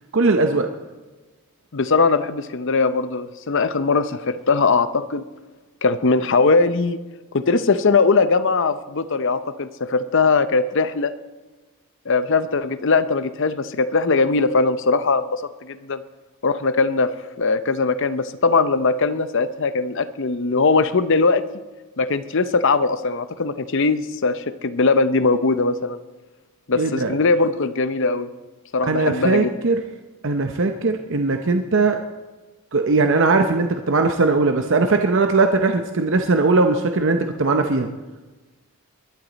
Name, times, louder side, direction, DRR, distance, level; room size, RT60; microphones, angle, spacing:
voice 1, 0.1-0.7 26.7-27.1 28.9-29.8 30.2-32.0 32.7-37.9, right 3 dB, 60° right, 5 dB, 0.8 m, -19 dB
voice 2, 1.7-5.2 5.8-7.0 7.3-11.1 12.1-16.0 16.4-17.1 17.4-21.4 22.0-26.0 26.7-28.3 28.7-29.5, left 4 dB, 55° left, 13 dB, 0.7 m, -20 dB
22.5 x 11.5 x 4.1 m, 1.2 s
head